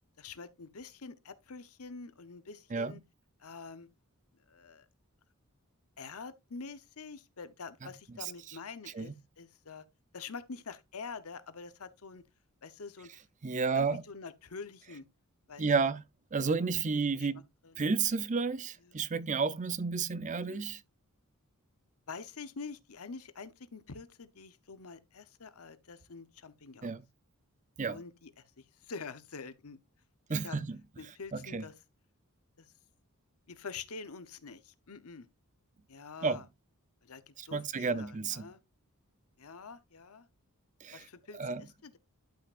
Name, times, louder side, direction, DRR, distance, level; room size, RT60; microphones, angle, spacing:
voice 1, 0.2-3.0 3.4-3.9 4.5-4.9 6.0-9.8 10.1-12.2 12.6-13.2 13.5-15.0 15.5-15.9 16.6-16.7 17.1-17.3 17.6-17.8 20.2-20.7 22.1-27.0 27.9-29.8 30.3-30.6 31.0-31.7 32.6-32.7 33.5-35.3 35.9-36.4 37.0-38.6 39.4-40.3 40.9-42.0, left 4 dB, 70° left, 0.9 m, -46 dB
voice 2, 2.7-3.0 7.8-7.9 8.2-8.3 8.9-9.1 13.4-14.0 15.6-16.0 16.3-17.5 17.8-20.8 26.8-27.0 27.8-28.0 30.3-30.8 31.3-31.6 36.2-36.4 37.4-38.5 40.8-41.1 41.3-41.6, right 4 dB, 35° right, 0.5 m, -31 dB
11.5 x 5.7 x 2.5 m
head